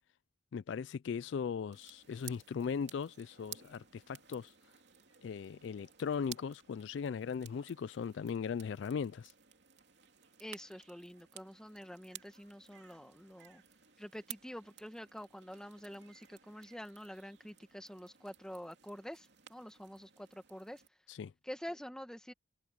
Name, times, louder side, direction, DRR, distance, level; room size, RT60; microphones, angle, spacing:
voice 1, 0.5-4.5 5.2-9.3 21.1-21.3, left 6 dB, 70° left, 0.3 m, -38 dB
sound 1, 1.7-20.9, right 11 dB, 60° right, 3.2 m, -55 dB
voice 2, 10.4-13.6 14.0-20.8 21.4-22.3, equal, 5° left, 1.4 m, -47 dB
head